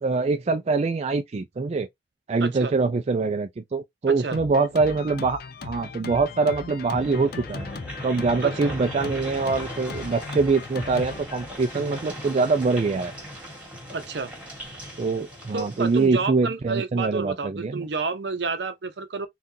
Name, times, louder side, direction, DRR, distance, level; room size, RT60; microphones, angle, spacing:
voice 1, 0.0-1.9 2.3-7.7 8.0-13.1 15.0-17.9, right 4 dB, 40° right, 0.4 m, -24 dB
voice 2, 2.4-2.7 4.1-4.4 8.4-8.7 13.9-14.3 15.5-19.3, right 4 dB, 70° right, 0.7 m, -30 dB
Drum kit, 4.3-12.1, left 5 dB, 55° left, 0.5 m, -39 dB
sound 1, 6.9-16.1, equal, 10° right, 1.4 m, -38 dB
3.7 x 2.4 x 2.7 m
head